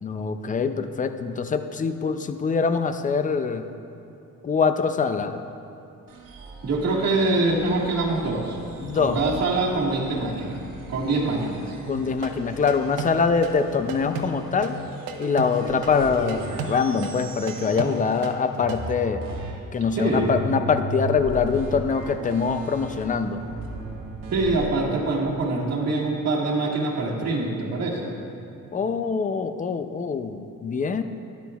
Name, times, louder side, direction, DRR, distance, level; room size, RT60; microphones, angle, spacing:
voice 1, 0.0-3.7 4.4-5.5 8.8-9.2 11.9-14.8 15.2-19.2 19.7-23.4 28.7-31.0, left 5 dB, 25° left, 9 dB, 0.4 m, -24 dB
sound 1, 6.1-18.4 18.6-24.7, right 2 dB, 65° right, 1.4 m, -37 dB
voice 2, 6.6-8.6 8.9-10.6 10.9-11.8 20.0-20.4 24.3-28.1, right 2 dB, 50° right, -3 dB, 1.7 m, -24 dB
sound 2, 11.9-18.9, right 6 dB, 80° right, 0.9 m, -33 dB
12.5 x 10.5 x 2.3 m, 2.8 s
cardioid pair, 120°, 35 cm